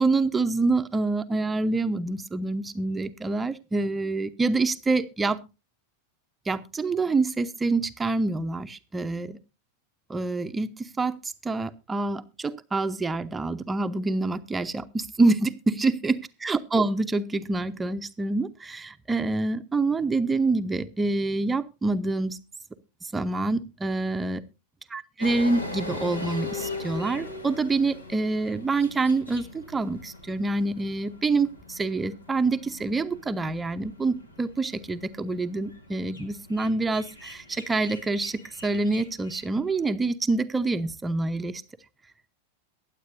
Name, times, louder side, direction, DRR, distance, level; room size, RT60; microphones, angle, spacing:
voice 1, 0.0-5.4 6.5-9.4 10.1-11.2 11.4-22.4 23.1-24.4 24.9-41.6, right 3 dB, 10° right, 11 dB, 0.7 m, -26 dB
sound 1, 25.2-39.8, left 2 dB, 75° left, 1.9 m, -40 dB
22.5 x 8.2 x 2.6 m, 0.28 s
figure-of-eight pair, 90°, 0 cm